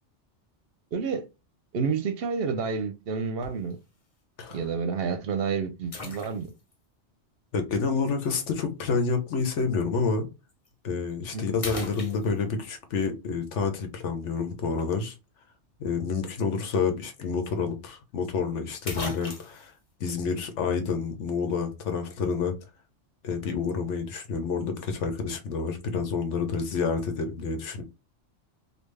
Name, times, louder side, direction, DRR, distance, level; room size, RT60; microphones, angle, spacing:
voice 1, 0.9-1.3 1.7-3.8 4.5-6.5 11.3-11.4, right 5 dB, 65° right, 0.7 m, -29 dB
sound 1, 3.4-3.7 4.4-4.5 5.9-6.7 8.2-8.3 10.5-10.7 11.1-11.3 11.6-12.7 16.8-16.9 17.2-17.3 18.4-18.5 18.9-19.7, left 3 dB, 35° left, 0.7 m, -38 dB
voice 2, 7.5-10.3 10.8-15.1 15.8-19.7 20.0-22.5 23.2-27.8, left 5 dB, 90° left, 1.1 m, -28 dB
3.4 x 2.3 x 3.2 m
omnidirectional pair, 1.2 m